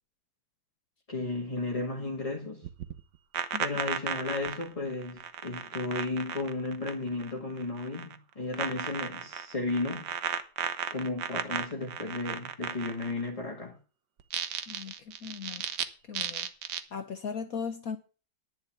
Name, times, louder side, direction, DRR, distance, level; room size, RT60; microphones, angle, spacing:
voice 1, 1.1-2.7 3.6-10.1 10.9-13.8, left 2 dB, 20° left, 2.0 m, -34 dB
sound 1, 2.6-7.3 7.6-8.2 8.5-13.3 14.2-15.8 16.1-16.8, right 8 dB, 65° right, 1.6 m, -35 dB
voice 2, 14.7-15.6 16.1-16.5 16.9-18.0, left 6 dB, 55° left, 1.2 m, -37 dB
10.5 x 5.7 x 8.8 m
omnidirectional pair, 2.0 m